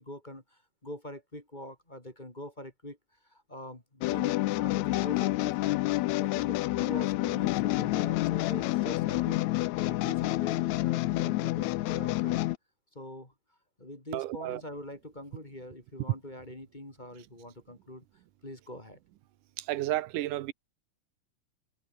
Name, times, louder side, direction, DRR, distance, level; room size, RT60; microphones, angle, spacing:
voice 1, 0.0-9.4 9.8-12.4 12.9-18.0 18.4-19.0, left 1 dB, 15° left, 3.0 m, -44 dB
sound 1, 4.0-12.6, left 18 dB, 75° left, 1.8 m, -28 dB
voice 2, 14.1-14.6 19.6-20.5, right 15 dB, 90° right, 2.5 m, -32 dB
omnidirectional pair, 3.6 m